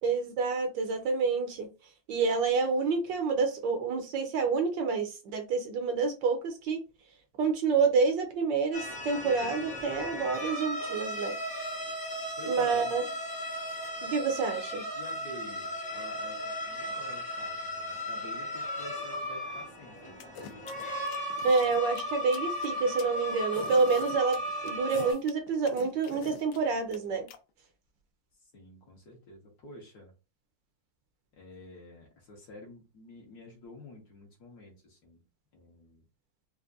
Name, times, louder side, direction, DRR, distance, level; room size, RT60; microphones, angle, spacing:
voice 1, 0.0-1.7 2.1-6.8 7.4-11.4 12.5-13.0 14.0-14.8 21.4-24.4 24.6-27.3, right 4 dB, 70° right, 6 dB, 1.2 m, -28 dB
sound 1, 8.7-25.1, equal, 10° left, 0.3 m, -36 dB
voice 2, 12.4-12.9 14.9-20.2 20.5-20.6 28.4-30.1 31.3-35.2 35.5-36.0, left 2 dB, 55° left, -1 dB, 1.5 m, -49 dB
sound 2, 20.2-27.4, left 6 dB, 80° left, 1.4 m, -46 dB
4.5 x 2.1 x 2.5 m, 0.30 s
omnidirectional pair, 2.2 m